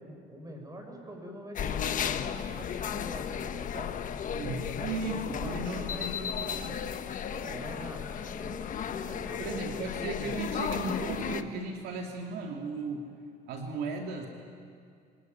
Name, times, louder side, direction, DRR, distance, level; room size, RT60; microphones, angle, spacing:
voice 1, 0.0-6.8 7.3-9.8, right 1 dB, 20° right, 3 dB, 6.2 m, -44 dB
sound 1, 1.6-11.4, left 8 dB, 50° left, 1.2 m, -34 dB
voice 2, 4.3-6.7 9.4-13.1 13.5-14.3, right 3 dB, 75° right, 2 dB, 2.6 m, -36 dB
25.0 x 19.5 x 9.4 m, 2.3 s
cardioid pair, 105°, 17 cm